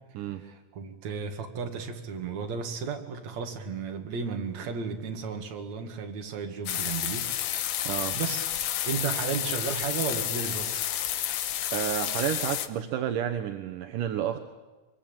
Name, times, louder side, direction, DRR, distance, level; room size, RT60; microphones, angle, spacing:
voice 1, 0.4-8.5 8.8-10.8, right 6 dB, 55° right, 3.3 m, -34 dB
sound 1, 6.7-12.7, left 11 dB, 85° left, 2.8 m, -30 dB
voice 2, 7.9-8.2 11.7-14.4, right 10 dB, 75° right, 2.7 m, -30 dB
24.0 x 23.0 x 8.9 m
omnidirectional pair, 3.9 m